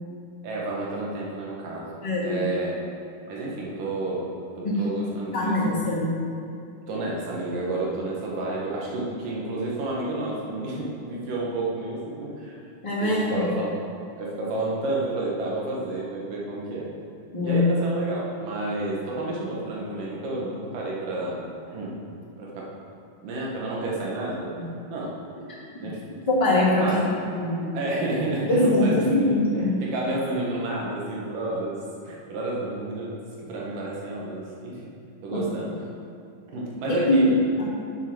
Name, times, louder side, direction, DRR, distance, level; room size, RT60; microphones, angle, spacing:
voice 1, 0.4-2.8 3.3-4.3 4.6-5.8 6.9-12.6 13.0-13.8 14.2-16.9 17.4-22.0 22.4-22.7 23.2-24.5 24.9-25.1 25.8-26.0 26.8-27.5 27.7-29.2 29.5-31.8 32.0-34.8 35.2-35.9 36.5-37.4, right 2 dB, 85° right, -4 dB, 3.2 m, -30 dB
voice 2, 2.0-2.4 4.6-4.8 5.3-6.2 12.8-13.5 17.3-17.7 26.3-26.9 27.3-27.7 28.5-29.7 37.0-37.2 37.6-37.7, left 2 dB, 10° left, -9 dB, 2.1 m, -22 dB
7.9 x 6.7 x 6.1 m, 2.5 s
omnidirectional pair, 3.7 m